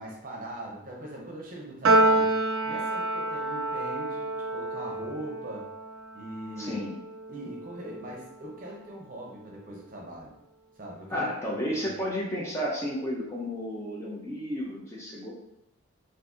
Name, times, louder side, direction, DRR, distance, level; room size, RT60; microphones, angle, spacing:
voice 1, 0.0-2.3 2.6-5.7 6.1-6.8 7.3-10.4 10.8-11.8 12.1-12.2, right 1 dB, 40° right, -2 dB, 0.7 m, -41 dB
Piano, 1.8-8.4, right 2 dB, 80° right, 0.4 m, -28 dB
voice 2, 6.6-7.0 11.1-15.3, equal, 15° left, -4 dB, 0.5 m, -32 dB
3.9 x 2.6 x 2.5 m, 0.83 s
head